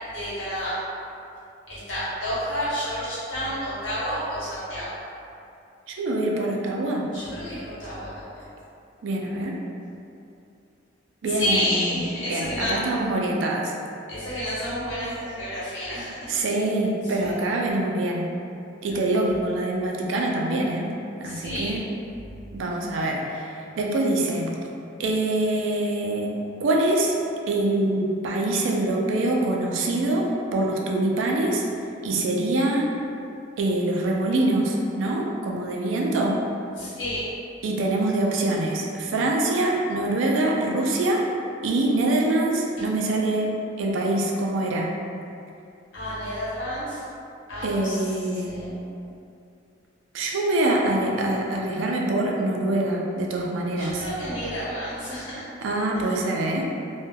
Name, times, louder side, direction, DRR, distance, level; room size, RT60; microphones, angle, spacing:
voice 1, 0.1-0.8 1.7-4.9 7.1-8.4 11.3-12.9 14.1-16.3 17.0-17.1 21.2-21.8 36.8-37.2 45.9-47.0 47.5-48.8 53.8-55.5 55.9-56.2, equal, 90° left, -9 dB, 0.9 m, -30 dB
voice 2, 5.9-7.1 9.0-9.6 11.2-11.8 12.3-13.7 16.3-18.3 18.8-20.9 21.2-21.8 22.5-24.5 25.0-27.2 27.5-30.3 30.5-31.6 32.0-32.9 33.6-36.4 37.6-41.2 41.6-44.9 47.6-48.6 50.1-54.0 55.6-56.7, right 2 dB, 90° right, -1 dB, 0.4 m, -24 dB
2.2 x 2.2 x 3.2 m, 2.6 s
head